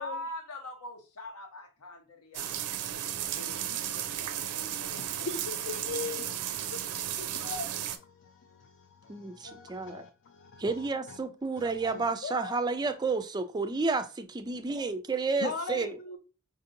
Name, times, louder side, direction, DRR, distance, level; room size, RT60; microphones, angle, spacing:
voice 1, 0.0-3.0 3.4-5.1 6.5-6.7, left 1 dB, 80° left, 0.9 m, -44 dB
sound 1, 2.3-8.0, right 11 dB, 90° right, 0.4 m, -34 dB
voice 2, 5.2-6.4 6.7-11.2 11.6-12.7 15.4-16.2, left 4 dB, 55° left, 0.4 m, -40 dB
voice 3, 9.1-10.0 10.6-16.0, right 4 dB, 20° right, 0.3 m, -31 dB
5.0 x 2.7 x 2.6 m
head